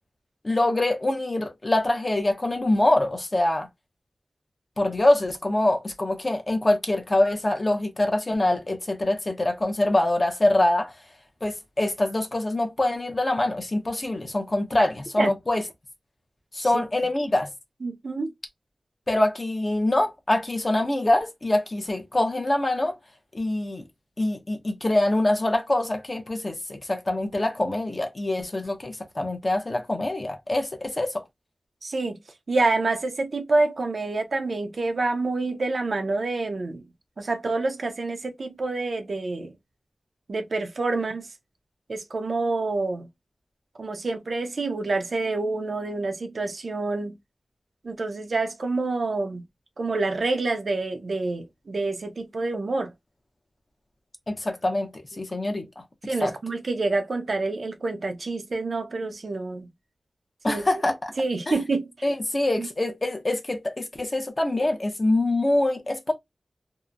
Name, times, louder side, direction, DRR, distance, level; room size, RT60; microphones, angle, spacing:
voice 1, 0.4-3.7 4.8-10.9 11.4-15.6 16.5-17.5 19.1-23.0 23.3-23.8 24.2-31.2 54.3-55.7 56.2-56.3 60.4-61.1 61.5-61.6 62.0-66.1, left 1 dB, 35° left, 0.7 m, -24 dB
voice 2, 17.8-18.3 31.8-32.2 32.5-36.8 37.2-39.5 40.3-41.3 41.9-43.1 43.8-47.1 47.8-49.4 49.8-52.9 56.0-59.7 60.5-60.6 61.2-61.9 62.6-62.7, right 3 dB, 70° right, 0.6 m, -27 dB
2.8 x 2.1 x 2.3 m
wide cardioid pair, 75°, 0 cm